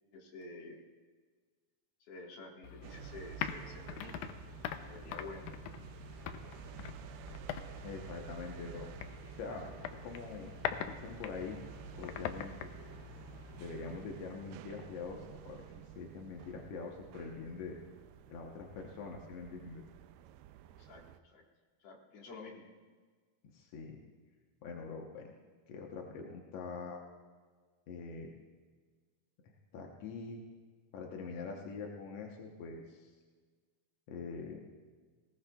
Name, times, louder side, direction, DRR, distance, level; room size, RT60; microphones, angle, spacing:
voice 1, 0.1-0.8 2.1-4.1 4.6-5.5 20.8-21.4 21.8-22.7, left 3 dB, 50° left, -1 dB, 2.2 m, -50 dB
sound 1, 2.6-14.0, left 9 dB, 85° left, 1.7 m, -44 dB
sound 2, 2.8-21.2, right 13 dB, 85° right, 2.4 m, -51 dB
voice 2, 7.8-8.9 9.4-9.7 10.0-10.5 10.9-11.6 12.0-12.5 13.6-17.8 18.3-19.8 23.5-24.0 24.6-25.3 25.7-27.0 27.9-28.3 29.4-30.4 30.9-33.1 34.1-34.6, left 4 dB, 70° left, 0 dB, 1.5 m, -44 dB
19.5 x 18.0 x 2.4 m, 1.5 s
omnidirectional pair, 4.3 m